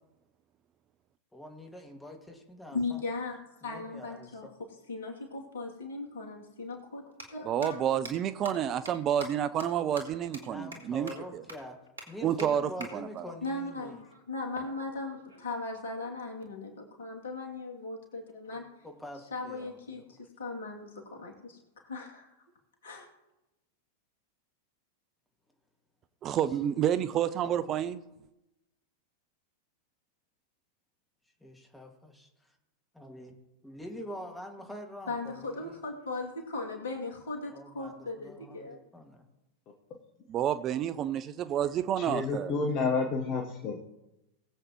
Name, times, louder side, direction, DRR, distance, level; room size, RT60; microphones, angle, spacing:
voice 1, 1.3-3.0 3.6-4.5 10.4-11.8 12.1-14.0 18.8-20.0 27.4-27.6 31.4-32.3 32.9-33.3 33.6-35.8 37.5-39.2, left 1 dB, 5° left, 2.1 m, -45 dB
voice 2, 2.7-3.4 3.6-4.5 4.9-7.0 7.3-7.8 13.4-14.0 14.3-18.6 19.3-22.3 22.8-23.1 35.1-38.8, left 3 dB, 65° left, 2.7 m, -38 dB
sound 1, 5.9-6.0 7.0-7.2 7.6-7.7 8.0-8.1 8.4-8.5 8.9-9.0 9.2-9.3 9.6-9.7 10.0-10.1 10.3-10.4 10.7-10.8 11.1-11.2 11.5-11.6 12.0-12.1 12.4-12.5 12.8-12.9 14.5-15.6, right 2 dB, 75° right, 2.2 m, -43 dB
voice 3, 7.5-11.4 12.2-13.3 26.2-28.0 40.3-42.5, right 10 dB, 30° right, 0.5 m, -29 dB
voice 4, 42.0-43.8, left 4 dB, 35° left, 1.3 m, -30 dB
20.5 x 8.0 x 3.1 m
figure-of-eight pair, 90°, 0 cm